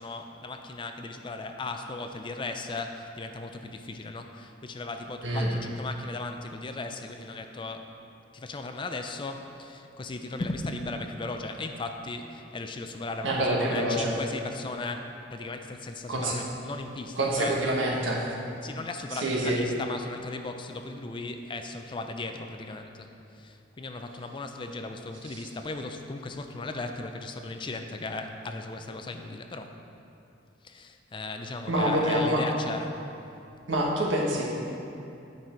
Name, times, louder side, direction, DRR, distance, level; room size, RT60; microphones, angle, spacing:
voice 1, 0.0-7.9 8.3-17.6 18.6-29.8 30.6-33.0, left 3 dB, 25° left, 6 dB, 0.4 m, -37 dB
voice 2, 13.2-14.1 16.1-16.4 17.2-18.3 19.1-19.6 25.3-25.4 31.7-32.4 33.7-34.5, right 1 dB, 85° right, -2 dB, 1.4 m, -26 dB
9.1 x 5.5 x 4.4 m, 2.7 s
head